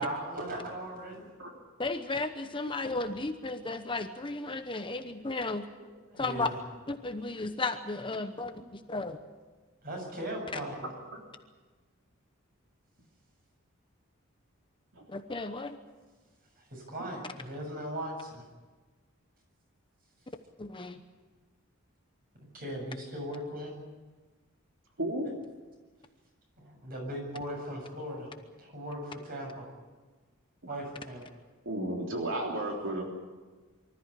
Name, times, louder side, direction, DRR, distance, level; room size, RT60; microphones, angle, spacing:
voice 1, 0.0-1.2 6.1-6.5 9.8-10.8 16.7-18.4 22.5-23.7 26.6-28.3 28.6-29.7 30.7-31.2, right 1 dB, 45° right, 1 dB, 7.5 m, -38 dB
voice 2, 1.8-5.7 6.1-6.5 6.9-9.2 15.1-15.8 20.6-21.0, left 3 dB, 25° left, 8 dB, 0.9 m, -34 dB
voice 3, 10.8-11.2 14.9-15.0 25.0-25.3 31.7-33.0, right 1 dB, 65° right, 0 dB, 3.4 m, -34 dB
24.5 x 14.0 x 9.9 m, 1.3 s
head